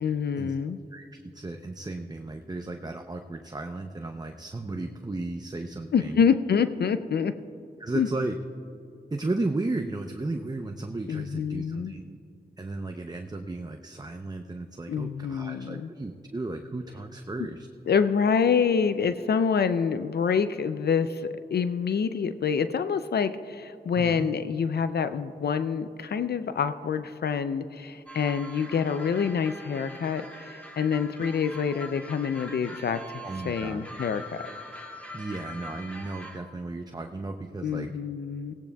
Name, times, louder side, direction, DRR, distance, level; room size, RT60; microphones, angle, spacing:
voice 1, 0.0-0.8 5.9-7.3 7.9-8.1 11.1-11.9 14.9-15.9 17.9-34.5 37.6-38.5, left 6 dB, 70° left, 11 dB, 0.4 m, -27 dB
voice 2, 0.9-6.2 7.8-8.4 9.1-12.2 12.6-17.7 24.0-24.3 33.2-33.8 35.1-37.9, right 2 dB, 25° right, 5 dB, 0.6 m, -34 dB
sound 1, 28.1-36.4, equal, 10° left, 2.3 m, -43 dB
17.5 x 16.5 x 2.3 m, 2.7 s
cardioid pair, 50°, 17 cm